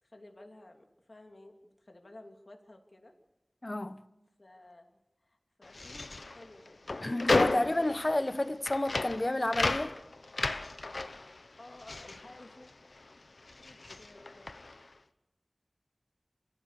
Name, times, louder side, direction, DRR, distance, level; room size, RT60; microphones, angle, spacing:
voice 1, 0.0-3.1 4.4-4.9 5.2-6.8 11.0-12.7 13.6-14.5, left 2 dB, 60° left, 3.0 m, -54 dB
voice 2, 3.6-4.0 7.0-10.0, left 1 dB, 40° left, 1.0 m, -30 dB
sound 1, 5.6-13.1 13.4-14.9, left 2 dB, 85° left, 0.9 m, -34 dB
27.0 x 16.0 x 6.9 m
wide cardioid pair, 55°, 0 cm